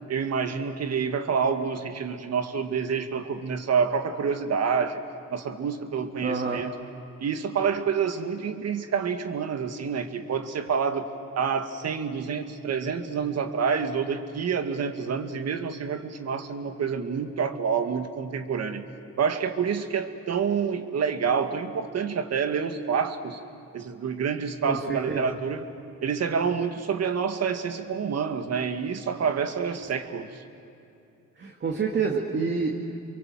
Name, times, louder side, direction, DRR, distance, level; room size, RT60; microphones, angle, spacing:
voice 1, 0.1-5.0 5.3-6.7 7.2-11.1 11.4-18.8 19.2-23.4 23.7-25.7 26.0-30.4, right 6 dB, 55° right, 7 dB, 2.0 m, -28 dB
voice 2, 6.2-6.6 24.7-25.2 31.4-33.0, right 4 dB, 40° right, 1 dB, 2.2 m, -28 dB
29.5 x 23.0 x 7.7 m, 2.7 s
cardioid pair, 90°, 30 cm